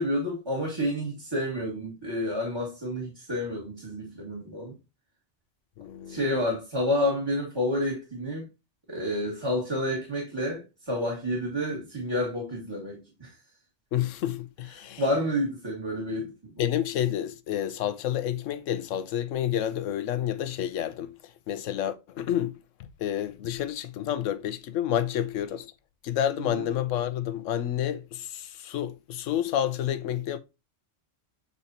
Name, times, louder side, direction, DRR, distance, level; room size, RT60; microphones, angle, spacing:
voice 1, 0.0-4.7 6.1-8.5 8.9-13.3 15.0-16.3 26.4-26.7, left 1 dB, 20° right, 1.9 m, -29 dB
voice 2, 5.8-6.2 13.9-15.0 16.6-25.7 26.0-30.4, left 11 dB, 80° left, 1.0 m, -29 dB
8.3 x 4.1 x 2.8 m
omnidirectional pair, 1.3 m